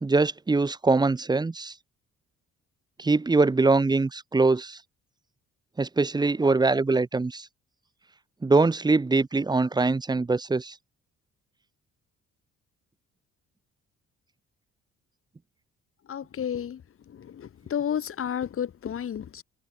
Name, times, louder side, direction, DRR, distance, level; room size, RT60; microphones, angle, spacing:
voice 1, 0.0-1.7 3.0-4.8 5.8-7.5 8.4-10.7, right 3 dB, 15° right, 0.6 m, -23 dB
voice 2, 16.1-16.8 17.1-19.4, left 9 dB, 45° left, 1.1 m, -32 dB
cardioid pair, 90°, 30 cm